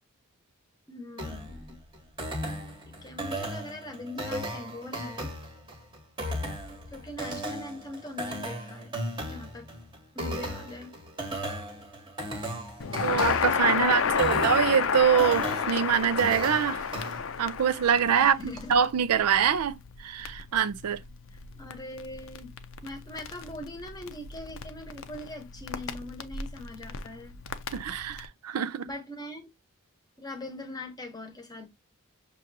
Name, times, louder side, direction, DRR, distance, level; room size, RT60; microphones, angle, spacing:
voice 1, 0.9-1.8 3.0-5.3 6.9-9.0 9.3-9.7 10.1-10.9 13.7-14.6 18.1-18.8 21.3-22.5 22.8-27.4 28.8-29.5 30.2-31.7, left 2 dB, 15° left, 0.9 m, -41 dB
sound 1, 1.2-17.2, equal, 20° right, 1.0 m, -36 dB
Crackle, 12.8-28.3, left 6 dB, 60° left, 0.5 m, -32 dB
voice 2, 13.0-16.8 17.4-18.4 18.7-21.0 27.7-28.8, right 8 dB, 85° right, 0.4 m, -24 dB
6.4 x 2.6 x 2.6 m
head